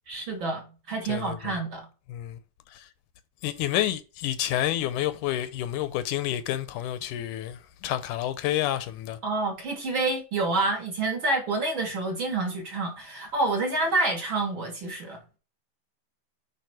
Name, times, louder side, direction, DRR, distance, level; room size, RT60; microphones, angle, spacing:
voice 1, 0.1-1.9 9.2-15.2, right 2 dB, 45° right, 1.9 m, -28 dB
voice 2, 1.1-1.6 2.1-2.4 2.7-2.9 3.4-9.2, left 13 dB, 80° left, 2.0 m, -29 dB
8.8 x 3.1 x 4.7 m
omnidirectional pair, 3.7 m